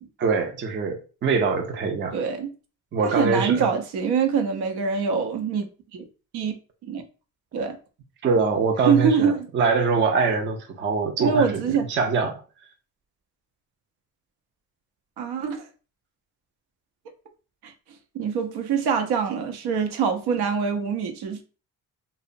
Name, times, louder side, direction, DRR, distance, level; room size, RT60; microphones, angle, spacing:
voice 1, 0.2-2.2 2.9-3.7 8.2-12.4, right 4 dB, 30° right, 0.4 m, -23 dB
voice 2, 2.1-2.5 3.0-5.7 5.9-6.0 6.3-6.5 6.8-7.0 7.5-7.8 8.9-9.5 11.2-11.8 15.2-15.7 17.6-17.7 18.1-21.4, right 6 dB, 85° right, 0.6 m, -24 dB
2.8 x 2.0 x 2.5 m
cardioid pair, 150°, 38 cm